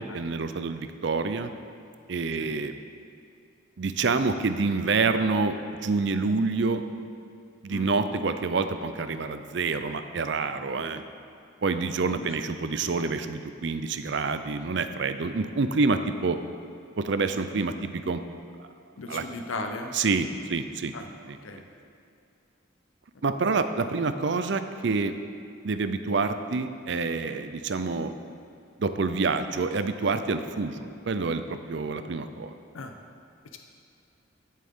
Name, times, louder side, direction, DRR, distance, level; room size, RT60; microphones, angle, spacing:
voice 1, 0.0-1.5 2.1-2.7 3.8-6.8 7.6-11.0 11.6-16.4 17.0-18.2 18.6-18.7 19.1-19.2 19.9-20.9 21.3-21.4 23.2-25.1 25.6-28.1 28.8-32.5, right 4 dB, 60° right, 10 dB, 0.5 m, -27 dB
voice 2, 19.0-19.9 20.9-21.1 21.4-21.6 32.7-32.9, left 2 dB, 85° left, 5 dB, 0.7 m, -36 dB
16.5 x 7.5 x 3.7 m, 2.5 s
head